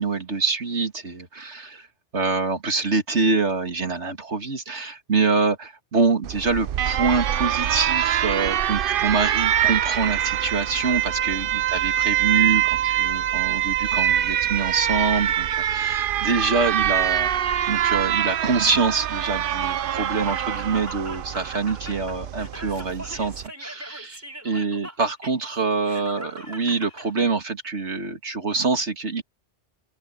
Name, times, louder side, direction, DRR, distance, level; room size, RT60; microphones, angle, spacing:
voice 1, 0.0-1.9 2.1-17.3 17.7-29.2, right 4 dB, 90° right, 2.6 m, -25 dB
Alarm, 6.2-23.5, right 11 dB, 60° right, 0.7 m, -24 dB
Laughter, 19.6-27.3, equal, 15° right, 6.4 m, -41 dB
open air
omnidirectional pair, 1.1 m